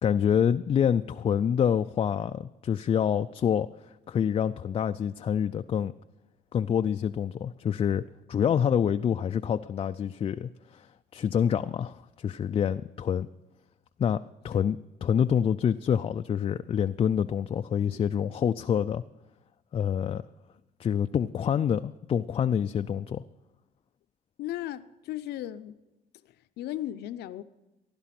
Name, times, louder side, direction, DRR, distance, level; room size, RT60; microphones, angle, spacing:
voice 1, 0.0-3.7 4.1-5.9 6.5-8.0 8.3-13.3 14.0-19.0 19.7-20.2 20.8-23.2, left 8 dB, 35° left, 0.4 m, -27 dB
voice 2, 24.4-25.8 26.2-27.4, left 13 dB, 75° left, 0.6 m, -36 dB
15.5 x 11.5 x 5.9 m
cardioid pair, 110°, 17 cm